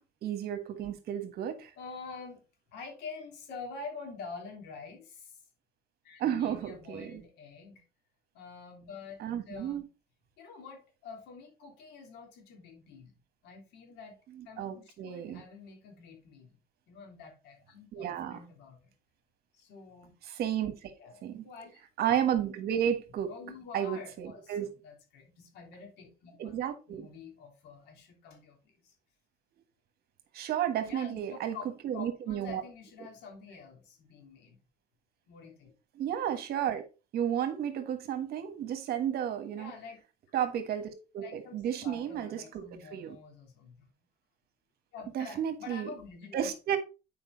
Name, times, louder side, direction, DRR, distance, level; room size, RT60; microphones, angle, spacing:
voice 1, 0.2-1.7 6.2-7.2 9.2-9.8 14.4-15.4 17.9-18.4 20.3-20.9 21.2-21.4 22.0-23.3 23.7-24.7 26.4-27.1 30.3-31.5 31.8-32.6 35.9-36.8 37.1-39.7 40.3-42.6 42.9-43.1 45.1-45.9 46.3-46.8, right 9 dB, 70° right, 1.5 m, -32 dB
voice 2, 1.8-2.4 2.7-5.4 6.0-7.8 8.3-9.9 10.4-13.1 13.4-14.2 14.4-16.6 16.9-18.9 19.5-20.1 21.0-21.8 23.3-28.9 30.8-34.6 35.3-35.7 39.5-40.0 41.2-43.9 44.9-46.5, left 4 dB, 85° left, 3.3 m, -47 dB
8.7 x 5.0 x 4.0 m
cardioid pair, 110°, 17 cm